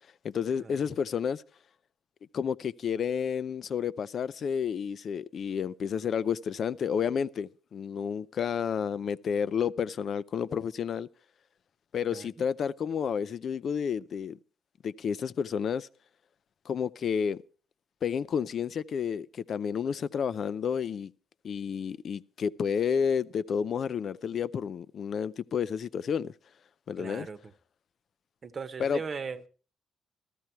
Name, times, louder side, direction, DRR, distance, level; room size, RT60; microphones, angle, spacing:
voice 1, 0.2-1.4 2.3-11.1 11.9-14.4 14.8-15.9 16.7-17.4 18.0-21.1 21.4-26.3 26.9-27.3 28.8-29.0, left 7 dB, 55° left, 0.6 m, -30 dB
voice 2, 27.0-27.4 28.4-29.4, right 5 dB, 40° right, 1.0 m, -38 dB
14.5 x 13.5 x 4.5 m
cardioid pair, 90°, 0 cm